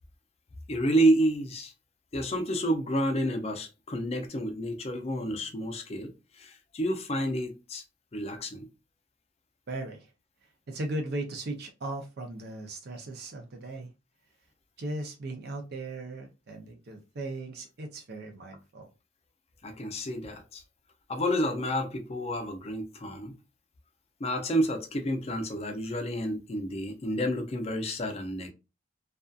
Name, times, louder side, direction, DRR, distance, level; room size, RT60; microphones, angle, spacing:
voice 1, 0.7-1.7 2.1-7.8 8.1-8.7 19.6-20.6 21.1-23.3 24.2-28.5, right 1 dB, 35° left, 0.5 m, -29 dB
voice 2, 9.7-10.1 10.7-13.9 14.8-18.9, right 2 dB, 55° right, 0.5 m, -37 dB
2.5 x 2.4 x 2.3 m
head